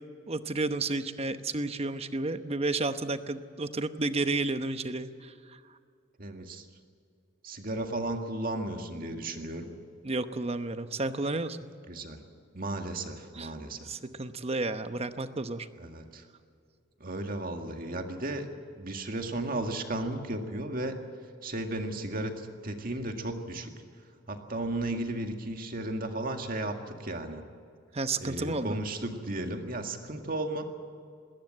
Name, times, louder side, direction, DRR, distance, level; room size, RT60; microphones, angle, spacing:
voice 1, 0.3-5.6 10.0-11.6 13.3-13.5 13.9-15.7 27.9-28.8, right 2 dB, 35° right, 10 dB, 0.9 m, -31 dB
voice 2, 6.2-6.6 7.4-9.7 11.9-12.2 12.5-13.9 15.8-16.2 17.0-18.5 18.7-21.0 21.4-23.7 24.3-27.4 28.2-30.6, right 1 dB, 50° right, 4 dB, 2.0 m, -34 dB
20.5 x 18.0 x 7.7 m, 2.4 s
head